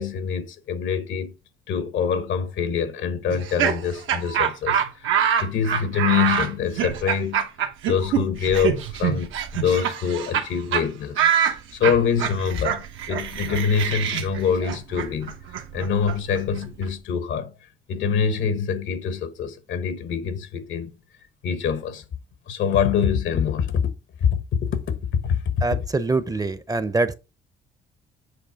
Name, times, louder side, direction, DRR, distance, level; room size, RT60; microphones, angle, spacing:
voice 1, 0.0-1.3 1.7-7.5 7.9-15.3 15.7-17.5 17.9-20.9 21.4-22.0 22.5-23.9 24.2-25.4, left 7 dB, 75° left, 1.1 m, -25 dB
Laughter, 3.3-10.5 10.7-10.8 11.2-16.9, right 8 dB, 85° right, 1.0 m, -25 dB
voice 2, 25.6-27.1, right 3 dB, 20° right, 0.6 m, -24 dB
7.7 x 3.2 x 4.5 m
cardioid pair, 90°, 20 cm